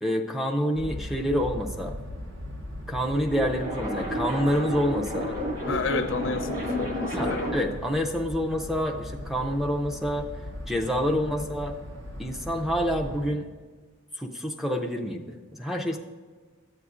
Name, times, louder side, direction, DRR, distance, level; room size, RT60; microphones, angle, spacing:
voice 1, 0.0-1.9 2.9-5.4 7.1-10.3 10.7-11.7 12.2-13.5 14.1-16.0, equal, ahead, 1 dB, 0.4 m, -27 dB
sound 1, 0.7-13.3, left 1 dB, 60° right, 0.9 m, -39 dB
sound 2, 2.9-7.8, equal, 40° right, 1.9 m, -31 dB
voice 2, 5.7-7.5, left 4 dB, 65° left, 8 dB, 0.6 m, -30 dB
13.5 x 8.0 x 2.5 m, 1.4 s
head